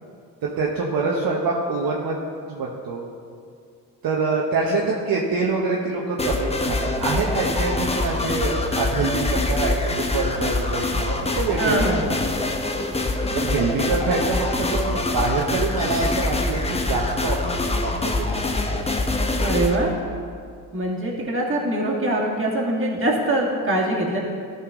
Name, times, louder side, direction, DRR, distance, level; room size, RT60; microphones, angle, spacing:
voice 1, 0.4-2.2 2.5-3.1 4.0-12.1 13.3-18.3 18.6-18.8, right 3 dB, 55° right, -2 dB, 1.1 m, -25 dB
sound 1, 6.2-19.8, left 2 dB, 15° left, 0.8 m, -24 dB
voice 2, 11.6-12.1 19.4-19.9 20.7-24.2, right 1 dB, 30° right, -3 dB, 2.1 m, -23 dB
12.5 x 4.6 x 3.7 m, 2.3 s
supercardioid pair, 60°, 43 cm